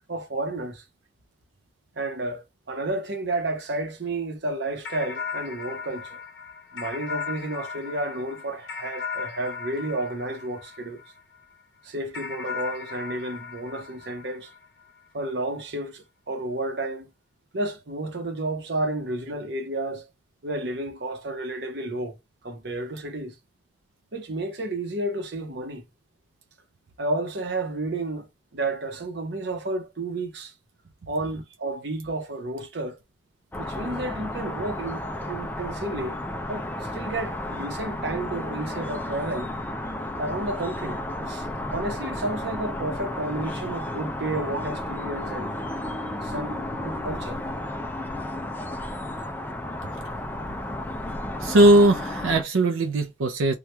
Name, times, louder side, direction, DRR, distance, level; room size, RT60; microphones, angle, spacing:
voice 1, 0.1-0.8 2.0-6.2 6.7-11.0 11.8-14.5 15.1-17.1 17.5-20.1 20.4-22.2 22.4-23.4 24.1-25.8 27.0-30.5 31.1-33.0 33.6-36.2 36.5-39.5 40.2-41.0 41.3-41.5 41.7-45.6 46.2-47.4, right 2 dB, 60° right, 0.8 m, -31 dB
sound 1, 4.8-11.4 12.1-14.9, left 6 dB, 60° left, 1.0 m, -37 dB
sound 2, 33.5-52.4, left 1 dB, 10° left, 0.4 m, -33 dB
voice 2, 51.4-53.5, right 1 dB, 90° right, 0.5 m, -19 dB
2.9 x 2.3 x 3.1 m
head